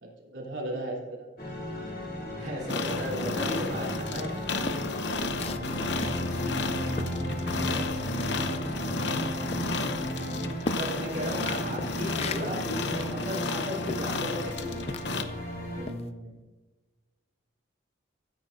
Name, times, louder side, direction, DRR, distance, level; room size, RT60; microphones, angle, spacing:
voice 1, 0.0-1.3 5.1-6.3 7.0-7.9 10.2-10.6 15.7-16.5, right 1 dB, 85° right, -3 dB, 3.2 m, -40 dB
sound 1, 1.4-15.9, equal, 50° left, 2.6 m, -35 dB
voice 2, 2.4-4.4 10.7-15.0, equal, 40° right, -4 dB, 1.8 m, -35 dB
sound 2, 2.7-15.2, left 3 dB, 65° left, 0.8 m, -33 dB
sound 3, 4.1-7.9 8.2-15.4 15.8-16.1, left 3 dB, 30° left, 0.4 m, -39 dB
15.5 x 9.6 x 2.6 m, 1.2 s
head